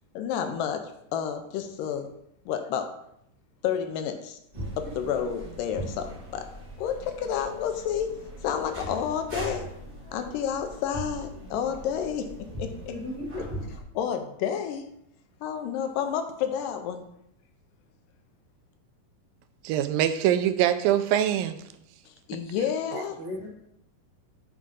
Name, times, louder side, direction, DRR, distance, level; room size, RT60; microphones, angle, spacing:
voice 1, 0.2-2.1 2.5-2.9 3.6-4.4 4.8-6.5 6.8-8.1 8.4-9.7 10.1-12.3 12.6-12.9 14.0-14.8 15.4-17.1 22.3-23.2, left 8 dB, 85° left, 7 dB, 2.3 m, -30 dB
sound 1, 4.5-13.8, right 1 dB, 25° right, 1.3 m, -40 dB
voice 2, 12.9-13.6 23.1-23.5, left 1 dB, 70° left, -3 dB, 3.6 m, -36 dB
voice 3, 19.6-21.6 22.9-23.0, right 11 dB, 90° right, 10 dB, 2.4 m, -23 dB
8.7 x 3.7 x 5.5 m, 0.74 s
omnidirectional pair, 4.0 m